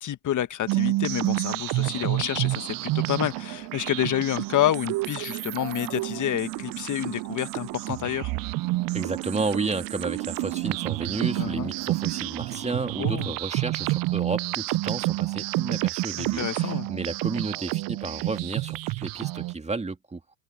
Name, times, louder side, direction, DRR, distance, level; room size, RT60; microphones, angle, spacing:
voice 1, 0.0-8.3 11.4-11.7 13.0-13.3 16.2-16.9, left 11 dB, 40° left, 1.5 m, -28 dB
sound 1, 0.7-19.5, right 20 dB, 50° right, 0.6 m, -29 dB
sound 2, 1.8-13.0, right 18 dB, 85° right, 3.0 m, -39 dB
voice 2, 8.9-20.2, right 3 dB, 15° right, 2.5 m, -32 dB
hypercardioid pair, 80°, 45 cm